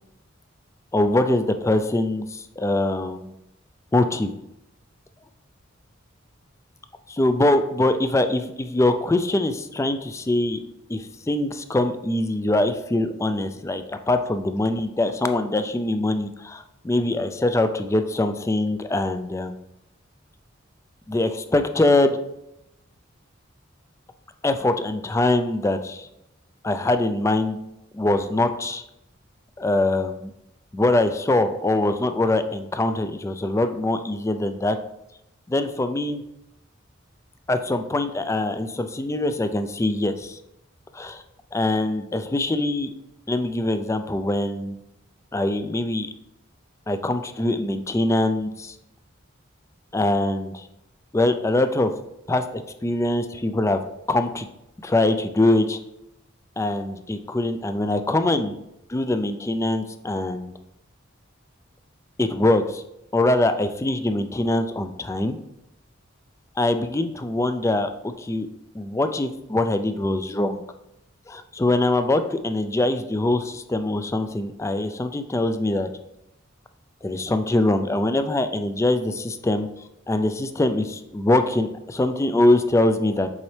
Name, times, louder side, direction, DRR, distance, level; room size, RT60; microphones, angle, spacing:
voice 1, 0.9-3.3 3.9-4.3 7.1-10.6 10.9-19.6 21.1-22.2 24.4-26.1 26.6-27.6 27.9-28.8 29.6-30.3 30.7-34.8 35.5-36.2 37.5-40.4 40.9-41.2 41.5-42.9 43.3-44.8 45.3-46.1 46.9-48.8 49.9-50.7 51.1-51.9 52.3-53.8 54.1-54.5 54.8-55.8 56.6-58.5 58.9-60.5 62.2-62.8 63.1-65.4 66.6-68.5 68.7-70.6 71.3-75.9 77.0-79.7 80.1-83.3, left 2 dB, 15° left, 9 dB, 0.3 m, -23 dB
7.3 x 4.1 x 3.2 m, 0.84 s
head